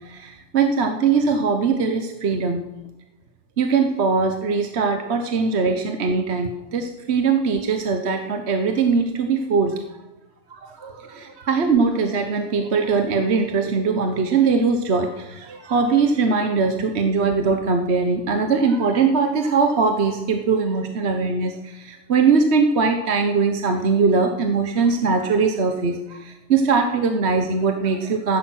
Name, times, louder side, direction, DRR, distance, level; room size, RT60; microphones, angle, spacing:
voice 1, 0.0-2.6 3.6-9.8 10.5-28.4, right 4 dB, 50° right, 5 dB, 1.1 m, -21 dB
15.0 x 10.0 x 6.3 m, 1.0 s
omnidirectional pair, 1.7 m